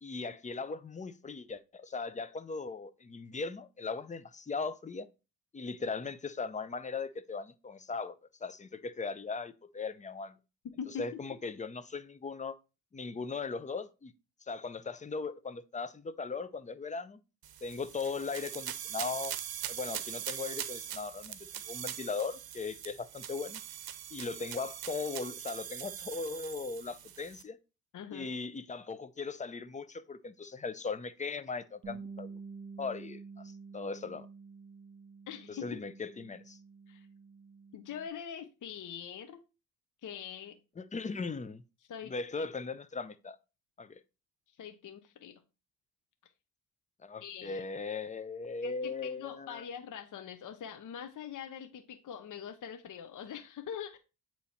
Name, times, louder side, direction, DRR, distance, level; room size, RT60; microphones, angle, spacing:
voice 1, 0.0-5.1 5.5-8.2 8.4-10.4 11.0-12.6 12.9-14.1 14.5-17.2 17.6-19.3 19.7-23.6 24.1-27.6 28.1-32.3 32.8-34.3 35.5-36.6 40.8-41.6 42.0-43.4 43.8-44.0 47.0-49.6, left 4 dB, 20° left, 0.6 m, -38 dB
voice 2, 10.6-11.2 27.9-28.3 35.3-35.6 36.9-37.1 37.7-39.4 40.0-40.6 41.9-42.5 44.5-45.4 47.2-47.6 48.6-54.0, left 8 dB, 50° left, 0.8 m, -43 dB
sound 1, 17.4-27.4, right 11 dB, 60° right, 0.8 m, -42 dB
Bass guitar, 31.8-38.1, right 5 dB, 30° right, 2.6 m, -49 dB
8.3 x 3.1 x 4.2 m
cardioid pair, 80°, 40 cm